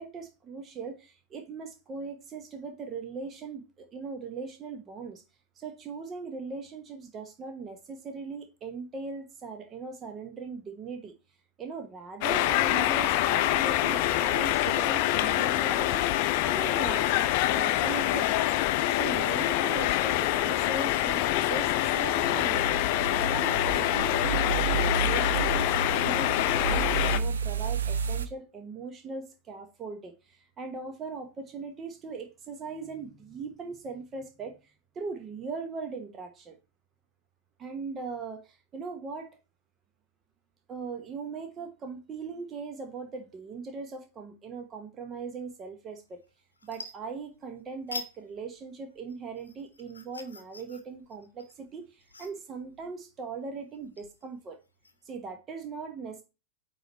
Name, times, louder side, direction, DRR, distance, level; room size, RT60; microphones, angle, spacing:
voice 1, 0.0-5.2 5.6-11.1 11.6-16.1 16.4-18.5 18.9-22.8 23.3-36.6 37.6-39.3 40.7-46.2 46.6-54.6 55.0-56.2, right 4 dB, 25° right, 1.0 m, -39 dB
sound 1, 12.2-27.2, left 14 dB, 45° left, 0.5 m, -26 dB
sound 2, 22.2-28.3, right 6 dB, 65° right, 0.6 m, -31 dB
sound 3, 46.0-46.3 46.6-47.5 47.9-48.2 48.5-55.1, left 3 dB, 80° left, 0.9 m, -45 dB
9.0 x 3.2 x 4.1 m
figure-of-eight pair, 90°, 0 cm